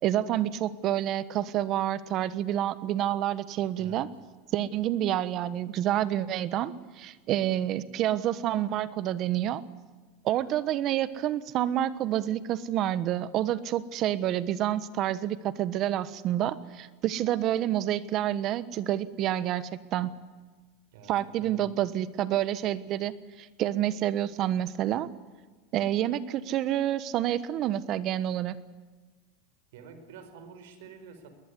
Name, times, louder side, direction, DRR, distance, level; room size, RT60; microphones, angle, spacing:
voice 1, 0.0-4.1 4.5-9.6 10.2-20.2 21.1-25.1 25.7-28.6, right 12 dB, 40° right, 16 dB, 1.2 m, -28 dB
voice 2, 3.8-4.1 20.9-21.7 29.7-31.3, right 5 dB, 75° right, 9 dB, 4.7 m, -48 dB
21.0 x 20.0 x 9.8 m, 1.3 s
supercardioid pair, 135°, 0 cm